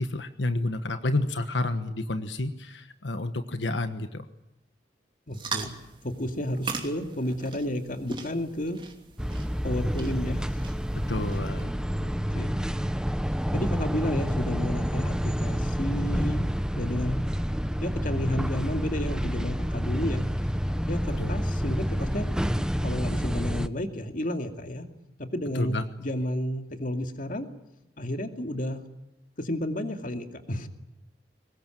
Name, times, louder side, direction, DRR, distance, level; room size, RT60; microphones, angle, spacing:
voice 1, 0.0-4.2 10.9-11.8 21.2-21.3 25.5-25.8, left 2 dB, 85° left, 9 dB, 1.3 m, -30 dB
voice 2, 5.3-5.7 6.0-8.8 9.6-10.7 12.0-12.5 13.5-16.5 16.8-17.3 17.8-20.3 20.9-22.3 22.6-24.9 25.2-27.5 28.0-28.8 29.4-30.7, left 1 dB, 50° left, 6 dB, 2.4 m, -32 dB
sound 1, 5.3-11.6, right 4 dB, 30° right, 2.9 m, -40 dB
sound 2, 9.2-23.7, equal, 5° right, 0.8 m, -28 dB
23.0 x 20.0 x 9.1 m, 0.94 s
head